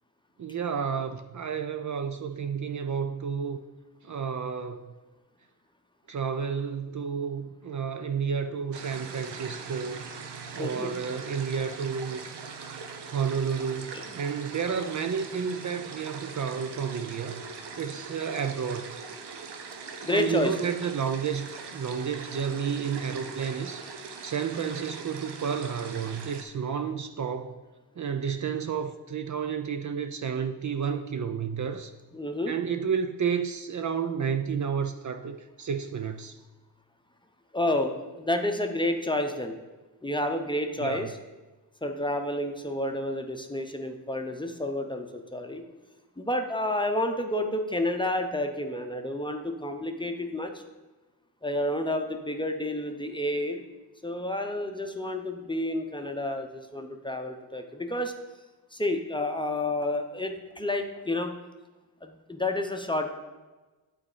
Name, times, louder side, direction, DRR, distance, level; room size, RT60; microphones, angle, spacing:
voice 1, 0.4-3.6 4.0-4.9 6.1-10.1 10.5-12.2 13.0-17.4 17.8-19.0 20.0-27.6 28.0-31.9 32.5-36.4 40.8-41.1, right 6 dB, 45° right, 7 dB, 0.6 m, -31 dB
sound 1, 8.7-26.4, right 5 dB, 70° right, 0.9 m, -41 dB
voice 2, 10.6-11.0 20.0-20.5 32.1-32.5 37.5-39.6 40.0-41.1 41.8-45.6 46.2-50.5 51.4-53.6 54.0-58.1 58.7-61.3 62.0-63.1, left 1 dB, 10° left, 5 dB, 0.8 m, -30 dB
8.6 x 4.2 x 4.9 m, 1.2 s
cardioid pair, 70°, 42 cm